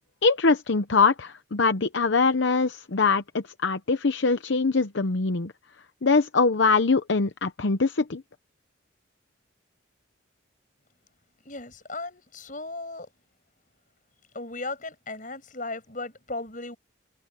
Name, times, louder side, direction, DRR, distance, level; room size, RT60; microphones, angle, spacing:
voice 1, 0.2-5.5 6.0-8.2, left 4 dB, 70° left, 0.8 m, -23 dB
voice 2, 11.5-13.1 14.3-16.8, left 2 dB, 40° left, 7.1 m, -36 dB
head